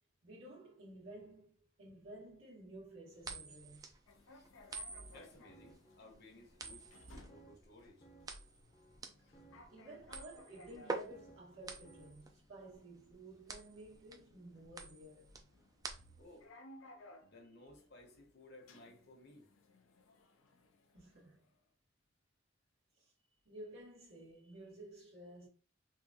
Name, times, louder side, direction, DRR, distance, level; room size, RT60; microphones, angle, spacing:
voice 1, 0.2-3.9 9.7-15.3 16.0-16.1 20.9-21.5 23.0-23.1 23.4-25.5, right 1 dB, 85° right, 1.7 m, -53 dB
sound 1, 3.2-16.4, right 3 dB, 20° right, 0.3 m, -48 dB
sound 2, 4.1-21.6, left 2 dB, 85° left, 0.5 m, -62 dB
sound 3, 4.6-12.3, right 2 dB, 25° left, 0.6 m, -65 dB
voice 2, 5.1-6.9 7.3-8.1 9.2-9.3 16.2-16.5 17.2-19.5, left 2 dB, 55° left, 0.9 m, -59 dB
3.6 x 2.4 x 2.7 m
head